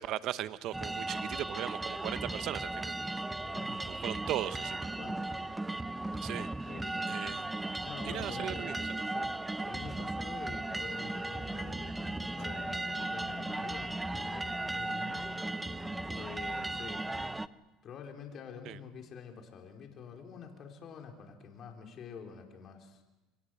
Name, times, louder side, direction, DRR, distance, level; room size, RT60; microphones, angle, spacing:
voice 1, 0.0-2.9 3.9-4.9 6.2-6.5 7.1-7.7 8.0-9.2 13.0-13.1 18.6-18.8, right 13 dB, 60° right, 14 dB, 0.9 m, -38 dB
sound 1, 0.7-17.5, right 2 dB, 10° right, 0.8 m, -36 dB
voice 2, 3.4-3.8 5.0-5.3 6.0-6.2 6.6-7.3 7.8-17.3 17.8-23.0, left 6 dB, 50° left, 2 dB, 4.3 m, -48 dB
sound 2, 10.8-16.9, left 2 dB, 15° left, 1.2 m, -47 dB
27.5 x 22.5 x 6.6 m, 1.1 s
hypercardioid pair, 75°, 0 cm